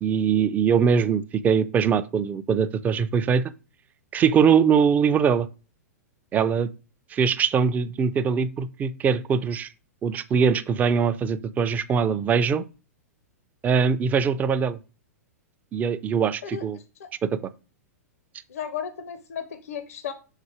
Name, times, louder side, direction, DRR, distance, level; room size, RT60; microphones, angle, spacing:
voice 1, 0.0-3.5 4.1-5.5 6.3-6.7 7.1-9.7 10.0-12.6 13.6-14.8 15.7-16.8 17.2-17.3, right 6 dB, 20° right, 0.4 m, -22 dB
voice 2, 18.5-20.1, left 8 dB, 60° left, 0.6 m, -34 dB
5.6 x 4.0 x 4.9 m
figure-of-eight pair, 105°, 9 cm